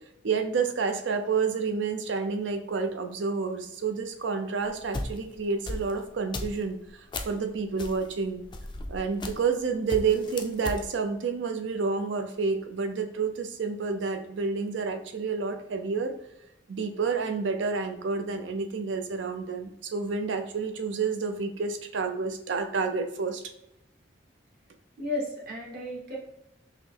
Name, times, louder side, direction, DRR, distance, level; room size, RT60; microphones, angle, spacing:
voice 1, 0.2-8.4 8.9-16.1 16.7-23.4, right 5 dB, 75° right, 6 dB, 0.5 m, -29 dB
sound 1, 4.6-7.4 7.8-9.6 9.9-10.8, left 2 dB, 25° left, 0.3 m, -36 dB
voice 2, 25.0-26.2, left 1 dB, 55° right, -3 dB, 1.2 m, -33 dB
5.5 x 2.0 x 3.3 m, 0.84 s
head